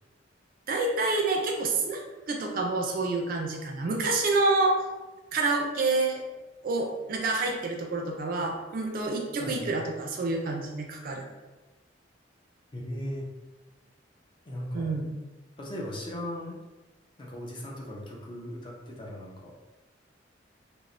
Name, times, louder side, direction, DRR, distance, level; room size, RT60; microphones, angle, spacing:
voice 1, 0.7-2.0 2.3-4.8 5.3-6.2 6.6-11.2 14.7-15.1, right 3 dB, 50° right, 2 dB, 0.4 m, -28 dB
voice 2, 9.4-9.8 12.7-13.3 14.5-14.9 15.6-16.6 17.2-19.5, left 1 dB, 25° left, -2 dB, 0.4 m, -37 dB
3.0 x 2.0 x 2.5 m, 1.1 s
head